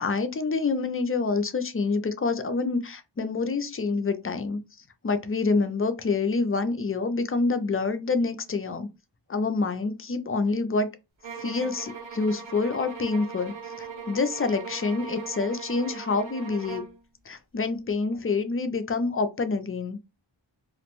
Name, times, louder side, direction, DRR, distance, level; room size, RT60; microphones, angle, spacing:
voice 1, 0.0-4.6 5.0-8.9 9.3-10.9 11.4-16.8 17.3-20.0, left 4 dB, 30° left, 0.4 m, -27 dB
sound 1, 11.2-17.0, right 5 dB, 80° right, 0.9 m, -40 dB
2.5 x 2.1 x 2.9 m
wide cardioid pair, 50°, 46 cm